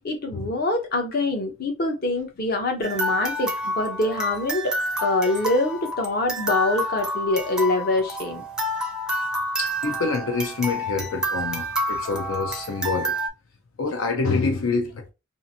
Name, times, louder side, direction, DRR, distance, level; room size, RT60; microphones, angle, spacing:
voice 1, 0.0-4.7 5.0-8.4, left 2 dB, 50° left, 0.7 m, -25 dB
sound 1, 2.8-13.3, equal, 5° right, 0.4 m, -29 dB
voice 2, 9.6-13.2 13.8-15.1, left 4 dB, 80° left, 0.5 m, -26 dB
2.8 x 2.5 x 2.7 m
head